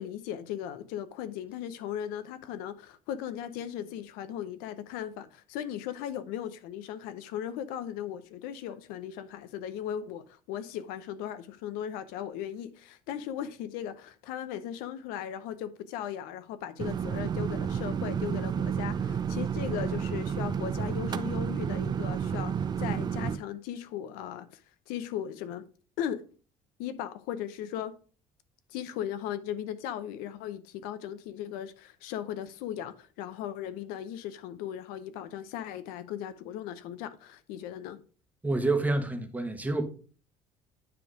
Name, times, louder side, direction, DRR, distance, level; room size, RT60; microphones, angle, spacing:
voice 1, 0.0-24.6 24.9-25.7 26.0-26.2 26.8-27.9 28.7-38.0, left 10 dB, 90° left, 0.7 m, -37 dB
sound 1, 16.8-23.4, right 7 dB, 30° right, 0.4 m, -31 dB
voice 2, 38.4-39.8, right 2 dB, 10° right, 1.1 m, -28 dB
9.8 x 3.5 x 4.8 m
cardioid pair, 125°, 15 cm